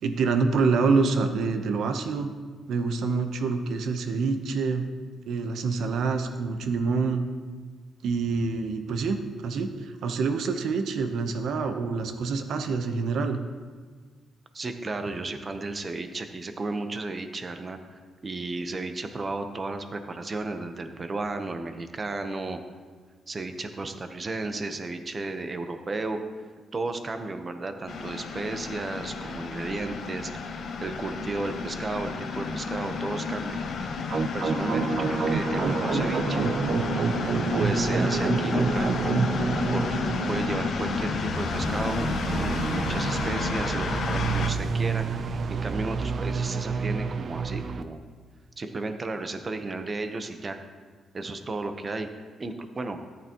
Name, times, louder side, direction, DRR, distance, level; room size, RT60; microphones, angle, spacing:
voice 1, 0.0-2.3 2.7-4.9 5.3-7.2 8.0-13.4, right 4 dB, 75° right, 7 dB, 0.9 m, -26 dB
voice 2, 14.5-22.6 23.3-26.2 26.7-30.4 30.8-33.6 34.3-36.5 37.5-39.0 39.7-48.0 48.6-50.6 51.1-52.1 52.4-53.0, right 3 dB, 30° right, 7 dB, 0.9 m, -33 dB
sound 1, 27.9-44.5, left 4 dB, 65° left, 0.9 m, -31 dB
sound 2, 34.1-47.8, right 5 dB, 50° right, 0.5 m, -29 dB
14.0 x 8.8 x 3.0 m, 1.5 s
cardioid pair, 100°, 0 cm